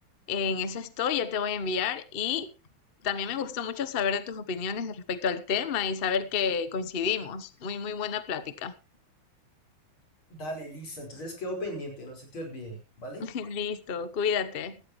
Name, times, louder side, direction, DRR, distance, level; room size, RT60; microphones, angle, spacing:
voice 1, 0.3-2.5 3.0-8.7 13.2-14.7, left 6 dB, 40° left, 0.9 m, -30 dB
voice 2, 10.3-13.2, equal, 90° left, 5.7 m, -37 dB
17.0 x 13.5 x 3.1 m
omnidirectional pair, 2.2 m